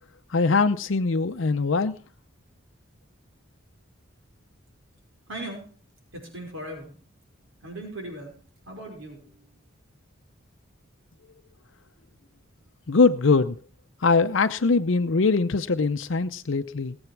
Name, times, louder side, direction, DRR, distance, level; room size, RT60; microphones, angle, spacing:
voice 1, 0.3-1.9 12.9-13.5 14.0-17.0, left 4 dB, 65° left, 0.6 m, -22 dB
voice 2, 5.3-5.6 6.1-6.9 7.6-8.3 8.7-9.5, right 1 dB, 70° right, 5.4 m, -38 dB
19.5 x 8.0 x 6.0 m
head